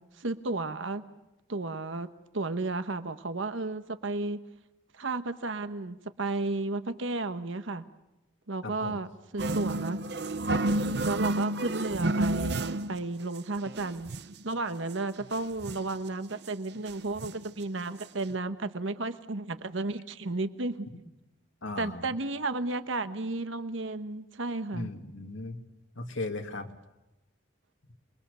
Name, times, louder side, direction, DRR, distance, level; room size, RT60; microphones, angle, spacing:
voice 1, 0.2-1.0 1.5-4.4 4.9-7.8 8.5-10.0 11.0-14.1 14.4-20.9 21.8-24.9, right 2 dB, 80° right, 10 dB, 1.1 m, -33 dB
voice 2, 8.6-9.0 21.6-22.1 24.7-25.6 26.0-26.7, left 2 dB, 80° left, 5 dB, 2.3 m, -37 dB
sound 1, 9.4-13.0 13.3-13.4 13.7-14.4 14.9-15.0 15.2-16.0 16.4-16.5 16.9-17.5 18.0-18.1 18.3-18.4, right 2 dB, 55° right, 0.8 m, -30 dB
27.5 x 22.0 x 6.9 m, 0.94 s
head